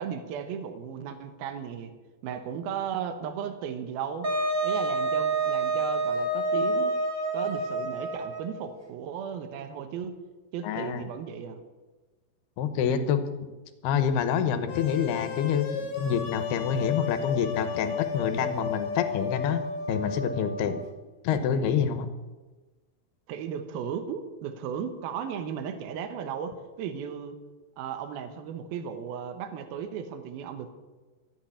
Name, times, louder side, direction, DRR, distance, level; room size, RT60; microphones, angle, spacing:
voice 1, 0.0-1.9 2.2-4.3 4.6-6.9 7.3-10.2 10.5-11.6 23.3-27.4 27.8-30.7, right 7 dB, 70° right, 8 dB, 2.9 m, -35 dB
Wind instrument woodwind instrument, 4.2-8.6, right 2 dB, 50° right, 0.9 m, -28 dB
voice 2, 10.6-11.1 12.6-13.3 13.8-19.6 19.9-20.8 21.2-22.1, left 7 dB, 80° left, 9 dB, 2.9 m, -27 dB
sound 1, 14.7-20.8, left 6 dB, 60° left, 3.1 m, -33 dB
13.0 x 9.0 x 9.7 m, 1.2 s
omnidirectional pair, 4.7 m